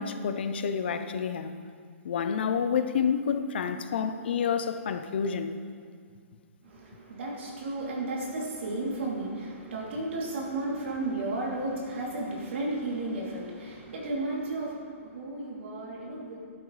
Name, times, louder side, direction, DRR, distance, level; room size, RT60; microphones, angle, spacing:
voice 1, 0.0-1.5 2.0-5.6, left 7 dB, 45° left, 9 dB, 0.6 m, -29 dB
voice 2, 6.6-16.5, right 2 dB, 55° right, -4 dB, 3.1 m, -33 dB
12.0 x 11.5 x 3.3 m, 2.1 s
hypercardioid pair, 180°, 8 cm